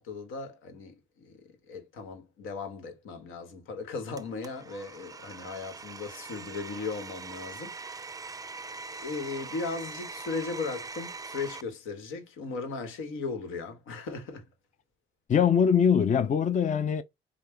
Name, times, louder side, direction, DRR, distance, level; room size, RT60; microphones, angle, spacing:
voice 1, 0.0-8.3 9.0-14.4, left 4 dB, 90° left, 1.3 m, -37 dB
Domestic sounds home sounds, 4.2-11.6, right 4 dB, 20° right, 0.4 m, -42 dB
voice 2, 15.3-17.0, left 7 dB, 40° left, 0.5 m, -22 dB
5.3 x 2.3 x 3.2 m
cardioid pair, 90°, 20 cm